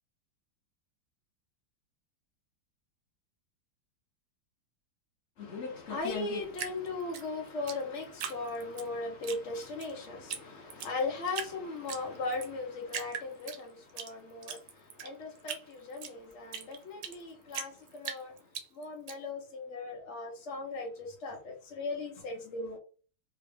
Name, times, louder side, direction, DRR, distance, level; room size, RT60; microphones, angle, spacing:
voice 1, 5.4-14.6 15.0-18.3 18.8-21.4 21.7-22.8, left 3 dB, 70° left, 0.6 m, -38 dB
Drip, 6.5-8.9 9.2-9.9 10.3-10.4 10.7-11.5 11.9-12.5 12.9-14.1 14.4-17.2 17.5-19.1, right 7 dB, 70° right, 1.2 m, -39 dB
3.4 x 2.7 x 3.3 m
omnidirectional pair, 2.1 m